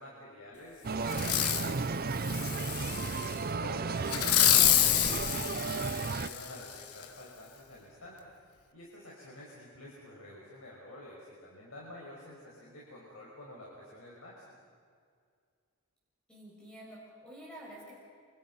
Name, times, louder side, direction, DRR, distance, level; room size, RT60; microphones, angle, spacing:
voice 1, 0.0-14.6, left 1 dB, 70° left, -4 dB, 5.9 m, -49 dB
sound 1, 0.8-6.3, right 4 dB, 40° right, 0.6 m, -34 dB
Fireworks, 1.1-1.7 2.2-3.3 4.1-6.5 7.0-7.1, left 11 dB, 90° left, 1.3 m, -27 dB
voice 2, 16.3-17.9, right 1 dB, 5° left, -5 dB, 6.3 m, -50 dB
29.5 x 28.0 x 5.6 m, 2.1 s
head